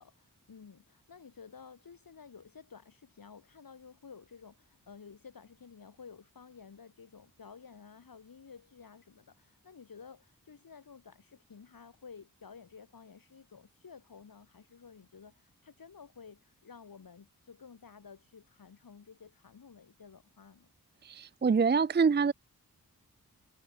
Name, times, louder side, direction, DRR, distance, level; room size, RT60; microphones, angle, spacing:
voice 1, 0.0-20.7, left 6 dB, 80° left, 7.5 m, -53 dB
voice 2, 21.0-22.3, right 5 dB, 30° right, 0.6 m, -26 dB
cardioid pair, 60°, 34 cm